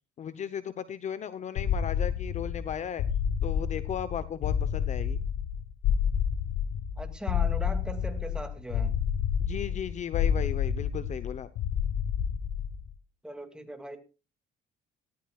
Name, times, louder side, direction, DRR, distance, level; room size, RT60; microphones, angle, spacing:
voice 1, 0.2-3.0 3.4-5.2 9.4-11.5, left 8 dB, 45° left, 14 dB, 0.8 m, -36 dB
sound 1, 1.6-12.9, left 8 dB, 80° left, 1.0 m, -29 dB
voice 2, 7.0-8.9 13.2-14.0, right 1 dB, 5° right, 6 dB, 2.4 m, -39 dB
18.0 x 14.5 x 2.4 m, 0.32 s
cardioid pair, 110°, 17 cm